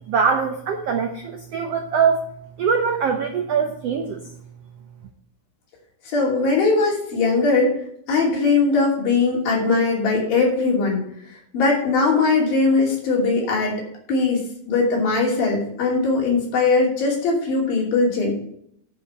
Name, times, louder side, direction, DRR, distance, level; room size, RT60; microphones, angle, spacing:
voice 1, 0.1-2.2 2.6-4.3, right 6 dB, 80° right, 3 dB, 1.4 m, -22 dB
voice 2, 6.1-7.7 8.1-11.0 11.5-13.8 14.1-14.4 14.7-18.3, left 3 dB, 90° left, -2 dB, 4.6 m, -20 dB
10.0 x 5.4 x 6.8 m, 0.70 s
omnidirectional pair, 4.0 m